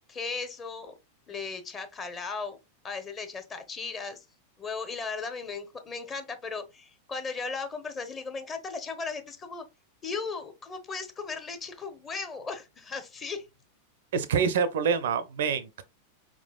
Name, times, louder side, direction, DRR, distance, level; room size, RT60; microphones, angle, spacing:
voice 1, 0.1-0.9 1.3-2.6 2.8-4.3 4.6-9.6 10.0-13.5, left 4 dB, 25° left, 0.8 m, -36 dB
voice 2, 14.1-15.8, right 6 dB, 60° right, 0.5 m, -26 dB
4.6 x 3.7 x 2.3 m
figure-of-eight pair, 90°, 0 cm